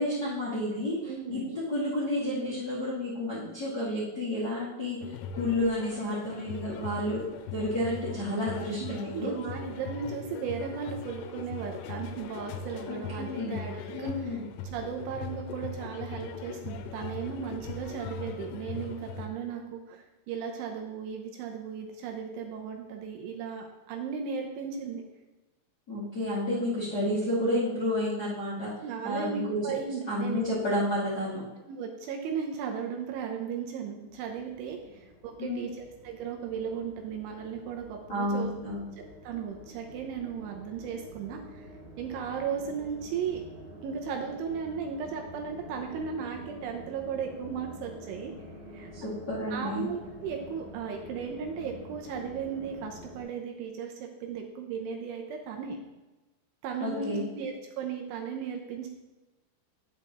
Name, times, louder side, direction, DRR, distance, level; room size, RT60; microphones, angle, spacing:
voice 1, 0.0-5.0 5.3-7.2 7.5-9.4 12.9-13.6 13.9-14.4 25.9-28.7 29.0-29.6 30.1-31.4 35.4-35.7 38.1-38.8 49.0-49.8 56.8-57.2, left 1 dB, 40° left, -9 dB, 1.4 m, -30 dB
voice 2, 1.1-1.5 8.8-14.4 14.7-25.0 28.8-30.5 31.7-38.5 39.2-41.7 42.0-43.4 43.8-48.3 48.7-48.9 49.5-55.8 56.6-58.9, right 6 dB, 80° right, 2 dB, 3.1 m, -36 dB
sound 1, 5.0-19.3, left 5 dB, 85° left, 3.2 m, -40 dB
sound 2, 34.0-53.2, equal, 45° right, 0.5 m, -48 dB
10.0 x 7.8 x 3.1 m, 1.1 s
omnidirectional pair, 5.9 m